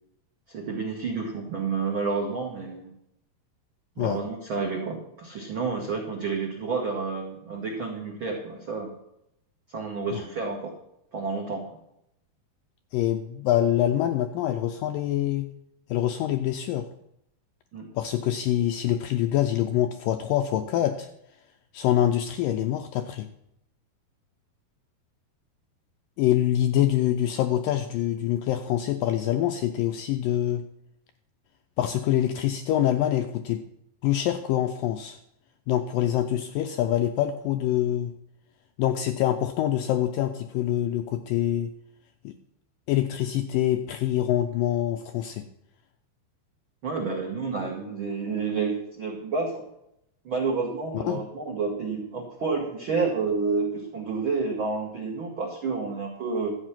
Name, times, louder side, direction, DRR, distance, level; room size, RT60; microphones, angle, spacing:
voice 1, 0.5-2.9 4.0-8.9 9.7-10.7 11.1-11.7 17.7-17.8 46.8-49.6 50.2-56.6, right 4 dB, 80° right, 0 dB, 1.1 m, -30 dB
voice 2, 12.9-15.5 15.9-16.9 18.0-21.1 21.7-23.3 26.2-30.6 31.8-33.6 34.0-35.2 35.7-38.1 38.8-41.7 42.2-42.3 42.9-45.5 50.9-51.2, left 12 dB, 85° left, 7 dB, 2.0 m, -25 dB
12.5 x 8.3 x 5.8 m, 0.79 s
omnidirectional pair, 4.5 m